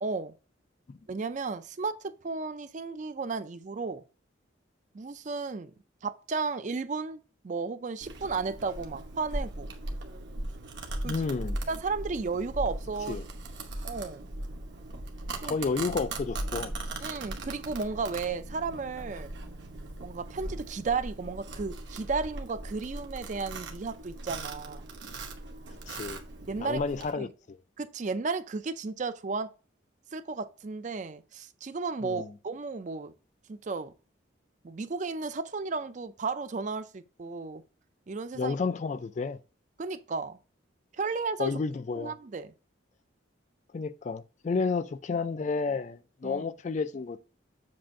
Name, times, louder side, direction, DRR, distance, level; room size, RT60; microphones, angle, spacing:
voice 1, 0.0-0.3 1.1-4.0 4.9-5.7 6.0-9.7 11.0-11.2 11.7-13.2 13.8-14.3 15.4-15.5 17.0-19.3 20.0-24.8 26.5-26.8 27.1-27.3 27.8-29.5 30.1-33.1 33.5-33.9 34.6-37.6 38.1-38.6 39.8-40.4 41.0-41.5 42.0-42.5 46.2-46.5, right 4 dB, 40° right, 0.4 m, -34 dB
Domestic sounds home sounds, 8.0-27.1, right 2 dB, 65° right, 1.0 m, -39 dB
voice 2, 11.0-11.6 13.1-13.2 15.4-16.7 25.9-26.2 26.6-27.6 32.0-32.3 38.3-39.4 41.4-42.1 43.7-47.2, left 4 dB, 40° left, 0.3 m, -31 dB
7.5 x 2.5 x 5.7 m
head